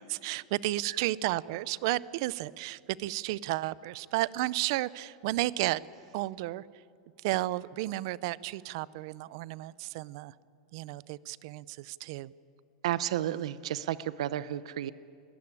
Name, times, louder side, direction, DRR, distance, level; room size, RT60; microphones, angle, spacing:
voice 1, 0.1-5.8 6.1-6.6 7.2-10.3 10.7-12.3, right 17 dB, 50° right, 20 dB, 0.5 m, -32 dB
voice 2, 12.8-14.9, right 12 dB, 85° right, 15 dB, 0.7 m, -32 dB
22.0 x 19.0 x 9.9 m, 2.3 s
supercardioid pair, 175°, 3 cm